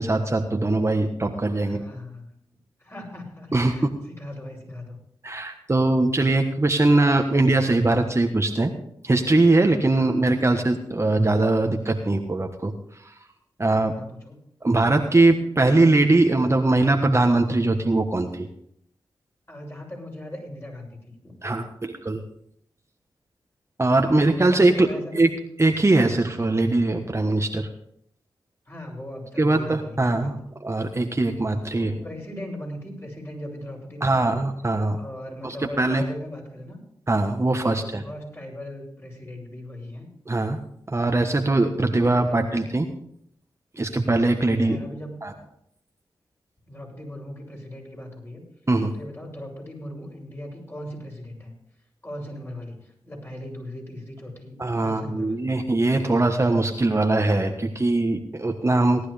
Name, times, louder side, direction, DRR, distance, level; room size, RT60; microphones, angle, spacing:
voice 1, 0.0-1.8 3.5-3.9 5.2-8.7 9.0-12.7 13.0-13.1 13.6-13.9 14.6-18.5 21.4-22.2 23.8-25.3 25.6-27.7 29.4-32.0 34.0-35.0 35.4-36.0 37.1-38.0 40.3-40.6 40.9-42.9 43.8-44.8 45.2-45.3 48.7-48.9 54.6-59.1, right 2 dB, 30° right, 4 dB, 1.4 m, -21 dB
voice 2, 1.6-2.3 2.8-5.0 9.9-10.3 13.9-14.4 19.5-21.3 24.2-25.2 28.7-30.4 31.7-34.4 35.0-36.8 37.7-40.1 42.1-42.7 44.6-45.2 46.7-48.4 48.9-51.5 52.0-55.5, left 1 dB, 30° left, -1 dB, 7.1 m, -38 dB
18.0 x 11.0 x 3.5 m, 0.70 s
cardioid pair, 40°, 9 cm